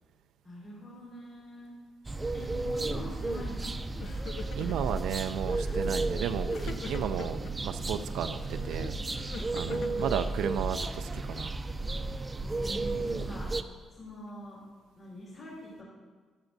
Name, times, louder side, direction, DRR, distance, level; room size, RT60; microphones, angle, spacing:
voice 1, 0.4-1.7 2.3-3.8 9.5-10.3 12.6-13.5 13.9-14.6 15.0-15.8, left 1 dB, 50° left, -6 dB, 3.6 m, -44 dB
sound 1, 2.0-13.6, right 2 dB, 20° right, 0.6 m, -33 dB
Crying sobbing, 3.3-3.7 3.9-5.0 5.5-5.9 6.5-7.5 8.4-10.7, left 5 dB, 70° left, 0.6 m, -44 dB
voice 2, 4.5-11.5, right 8 dB, 85° right, 8 dB, 0.4 m, -34 dB
12.5 x 12.5 x 2.7 m, 1.4 s
cardioid pair, 90°, 0 cm